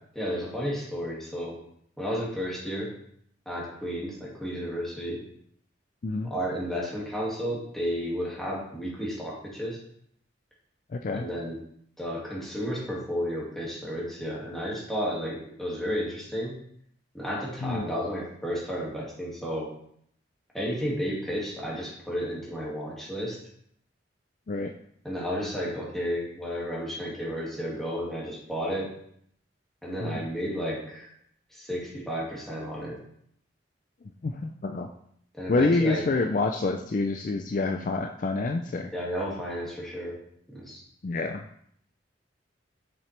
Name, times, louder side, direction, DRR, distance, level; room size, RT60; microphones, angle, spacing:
voice 1, 0.2-1.6 2.0-2.9 3.5-5.2 6.2-9.8 11.1-11.6 12.0-16.6 17.1-19.7 20.5-23.4 25.0-28.9 29.8-31.1 31.5-33.0 35.3-36.0 38.9-40.2 40.5-40.8, equal, ahead, -6 dB, 2.1 m, -32 dB
voice 2, 10.9-11.3 17.6-17.9 24.5-24.7 30.0-30.2 34.2-34.9 35.5-38.9 41.0-41.4, left 3 dB, 45° left, 5 dB, 0.4 m, -27 dB
6.7 x 6.0 x 3.3 m, 0.68 s
head